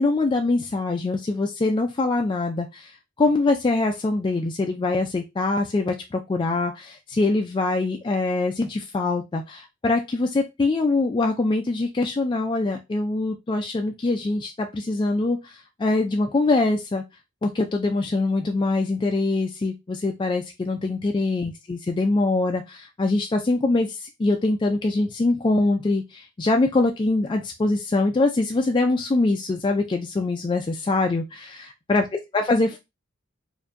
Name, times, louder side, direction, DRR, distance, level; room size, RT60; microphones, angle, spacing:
voice 1, 0.0-17.0 17.4-32.8, left 2 dB, 25° left, 3 dB, 0.3 m, -23 dB
4.5 x 2.6 x 2.5 m, 0.22 s
head